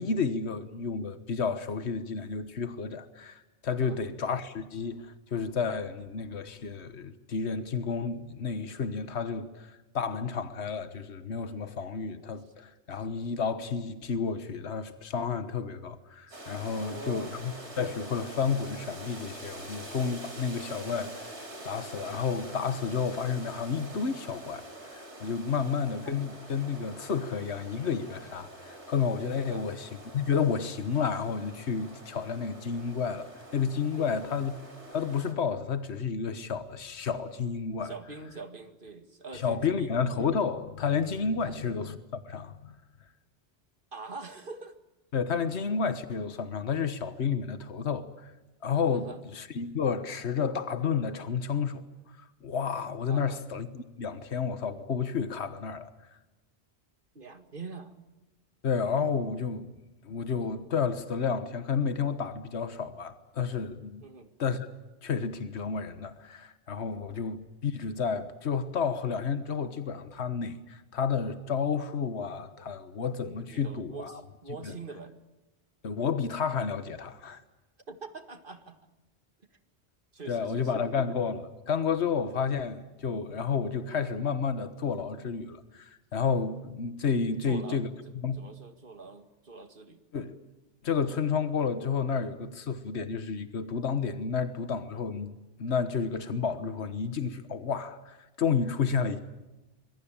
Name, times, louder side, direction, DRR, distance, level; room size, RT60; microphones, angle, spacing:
voice 1, 0.0-21.4 21.6-34.5 34.9-37.9 39.3-42.7 45.1-48.3 48.6-51.8 52.4-55.9 58.6-59.7 60.0-64.0 64.4-64.7 65.0-74.2 74.6-74.7 75.8-77.4 80.3-87.9 88.2-88.4 90.1-90.4 90.8-95.3 95.6-99.2, left 6 dB, 75° left, 1.6 m, -31 dB
sound 1, 16.3-35.3, right 1 dB, 90° right, 4.6 m, -45 dB
voice 2, 16.7-17.3 29.4-29.7 34.0-34.2 37.8-40.0 41.4-41.6 43.9-44.8 48.9-49.2 53.1-53.4 57.1-57.9 64.0-64.3 67.1-67.2 73.5-75.1 77.9-78.9 80.1-80.8 87.4-87.8 88.3-90.0 99.1-99.2, right 4 dB, 50° right, 2.2 m, -44 dB
25.5 x 22.5 x 8.9 m
omnidirectional pair, 1.1 m